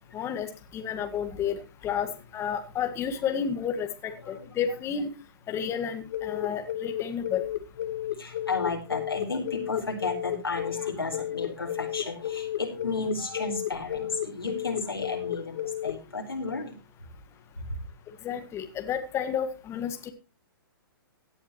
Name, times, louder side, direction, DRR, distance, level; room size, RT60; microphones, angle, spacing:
voice 1, 0.1-5.1 5.5-7.5 18.2-20.1, left 8 dB, 20° left, 6 dB, 1.9 m, -31 dB
sound 1, 6.1-15.9, left 12 dB, 55° left, 2.2 m, -32 dB
voice 2, 7.9-16.7 17.6-17.8, left 3 dB, 90° left, 2 dB, 4.6 m, -33 dB
17.0 x 11.0 x 3.1 m, 0.30 s
figure-of-eight pair, 120°, 12 cm